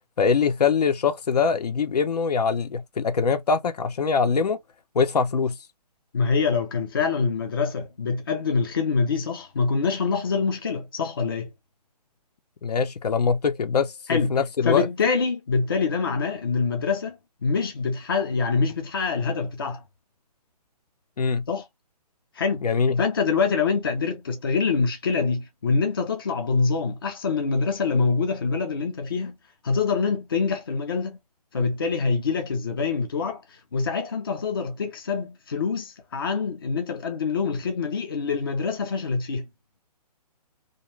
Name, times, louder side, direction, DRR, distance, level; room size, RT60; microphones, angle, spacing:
voice 1, 0.2-4.6 4.9-5.6 12.6-14.9 21.2-21.4 22.6-23.0, left 5 dB, 70° left, 0.7 m, -23 dB
voice 2, 6.1-11.5 14.1-14.4 14.6-19.8 21.5-21.6 22.4-22.6 23.0-29.4 29.6-31.2 31.5-39.5, left 5 dB, 35° left, 0.6 m, -25 dB
2.6 x 2.1 x 3.1 m
hypercardioid pair, 180°, 21 cm